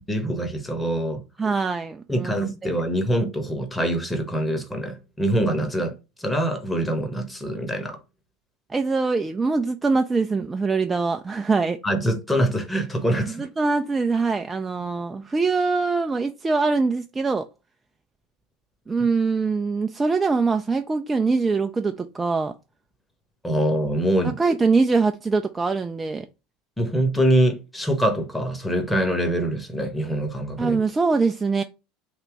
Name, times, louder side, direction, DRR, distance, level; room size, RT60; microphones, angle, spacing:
voice 1, 0.1-1.2 2.1-8.0 11.8-13.5 23.4-24.4 26.8-30.8, right 1 dB, 10° left, 1.1 m, -24 dB
voice 2, 1.4-2.4 2.6-2.7 8.7-11.8 13.3-17.5 18.9-22.5 24.4-26.3 30.6-31.6, right 4 dB, 15° right, 0.4 m, -23 dB
3.3 x 2.9 x 4.7 m
figure-of-eight pair, 75°, 0 cm